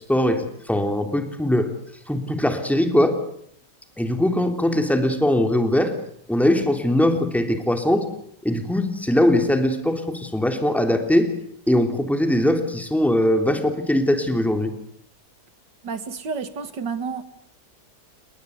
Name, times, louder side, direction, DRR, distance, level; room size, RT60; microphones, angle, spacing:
voice 1, 0.1-1.7 2.1-3.2 4.0-5.9 6.3-8.1 8.4-11.3 11.7-14.7, left 1 dB, ahead, 3.2 m, -21 dB
voice 2, 15.8-17.2, right 5 dB, 80° right, 2.5 m, -30 dB
29.5 x 21.0 x 8.2 m
omnidirectional pair, 1.8 m